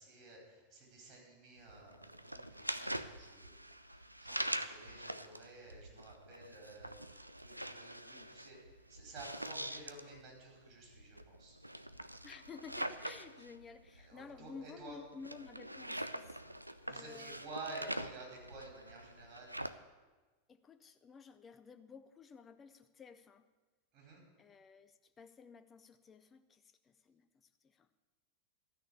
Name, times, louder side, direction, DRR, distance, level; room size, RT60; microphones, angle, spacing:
voice 1, 0.0-11.6 14.0-15.0 16.6-19.5 23.9-24.2, right 2 dB, 40° right, -1 dB, 4.8 m, -52 dB
sound 1, 1.6-19.7, right 1 dB, 85° right, 0.4 m, -44 dB
voice 2, 12.2-16.4 16.9-17.4 20.5-23.5 24.4-27.9, left 5 dB, 20° left, 10 dB, 0.7 m, -54 dB
13.0 x 6.4 x 9.5 m, 1.2 s
figure-of-eight pair, 90°, 0 cm